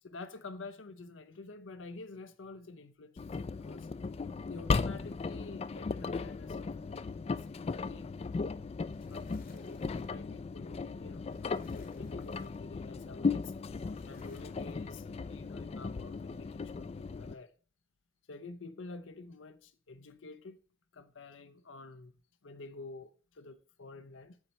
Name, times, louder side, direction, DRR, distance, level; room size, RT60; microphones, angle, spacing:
voice 1, 0.0-3.9 4.5-8.1 9.1-17.5 18.3-20.6 20.9-22.1 22.4-24.4, left 3 dB, 80° left, 0.6 m, -49 dB
Engine, 3.2-17.3, left 4 dB, 30° left, 0.3 m, -37 dB
sound 1, 8.9-10.1 10.9-13.0 13.7-14.8, left 3 dB, 50° left, 1.0 m, -60 dB
7.2 x 4.3 x 6.4 m
head